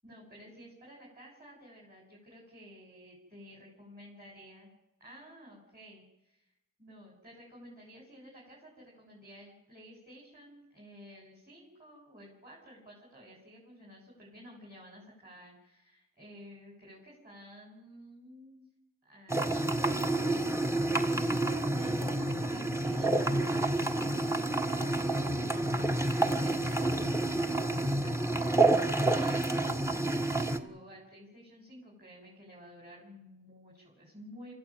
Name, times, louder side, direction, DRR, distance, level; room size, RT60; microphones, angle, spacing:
voice 1, 0.0-4.7 5.0-6.5 6.8-18.6 19.0-28.8 29.0-34.5, equal, 25° right, -4 dB, 7.9 m, -52 dB
sound 1, 19.3-30.6, right 2 dB, 5° right, 1.8 m, -29 dB
25.5 x 14.5 x 9.2 m, 0.90 s
wide cardioid pair, 40°, 36 cm